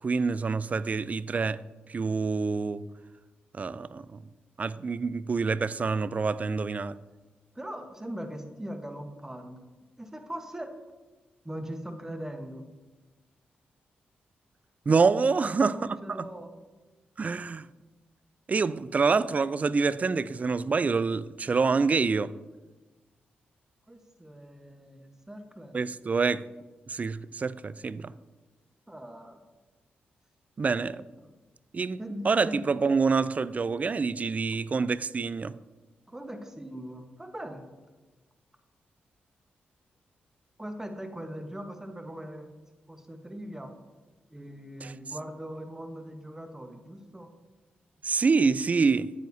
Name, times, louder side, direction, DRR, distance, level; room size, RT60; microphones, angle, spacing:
voice 1, 0.0-1.6 1.9-2.8 3.5-4.2 4.6-7.0 14.9-16.3 17.2-17.7 18.5-22.3 25.7-26.4 26.9-28.1 30.6-31.0 31.7-35.5 44.8-44.9 48.0-49.1, right 4 dB, 40° right, 0.3 m, -26 dB
voice 2, 7.5-9.6 10.0-10.7 11.4-12.6 15.4-16.5 23.9-25.9 28.9-29.4 31.2-31.3 32.0-32.7 36.1-37.6 40.6-42.5 42.9-43.7 44.3-47.3, equal, 15° right, 1.2 m, -40 dB
9.1 x 9.0 x 2.7 m
cardioid pair, 60°, 4 cm